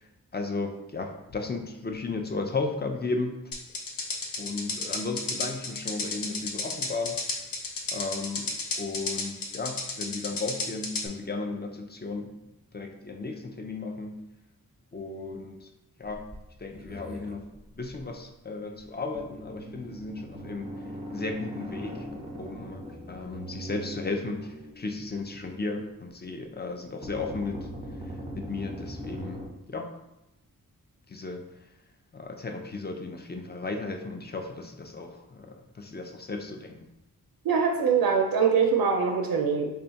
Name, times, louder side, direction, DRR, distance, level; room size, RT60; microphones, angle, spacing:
voice 1, 0.0-3.4 4.4-7.2 7.9-8.5 8.8-12.4 12.7-14.2 14.9-15.7 16.0-16.3 16.6-17.5 17.8-20.7 21.1-22.1 22.4-27.7 28.0-29.9 31.1-31.7 32.1-36.9, left 3 dB, 30° left, 4 dB, 0.5 m, -35 dB
sound 1, 3.5-11.1, left 3 dB, 75° left, 0.7 m, -32 dB
sound 2, 16.0-18.1 18.8-18.9 19.1-25.6 27.0-29.5, equal, 20° right, 0.6 m, -40 dB
voice 2, 37.5-39.7, right 6 dB, 80° right, 3 dB, 0.5 m, -23 dB
3.6 x 2.3 x 4.0 m, 0.90 s
wide cardioid pair, 70°, 35 cm